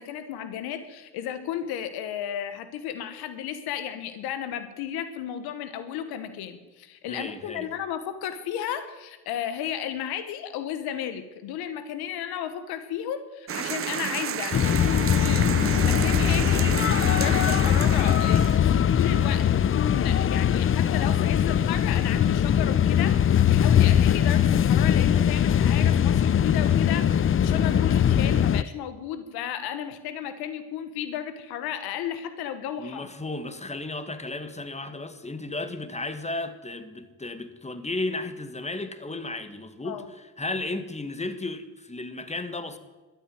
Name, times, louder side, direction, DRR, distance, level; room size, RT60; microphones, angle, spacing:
voice 1, 0.0-16.6 17.1-27.1 27.4-33.1 39.8-40.0, left 9 dB, 90° left, 11 dB, 1.2 m, -33 dB
voice 2, 7.1-7.7 32.8-42.8, left 2 dB, 20° left, 10 dB, 1.8 m, -34 dB
sound 1, 13.5-18.6, right 10 dB, 40° right, 0.5 m, -31 dB
sound 2, 14.5-28.6, left 9 dB, 35° left, 0.5 m, -21 dB
12.5 x 9.7 x 9.5 m, 1.2 s
supercardioid pair, 60°, 37 cm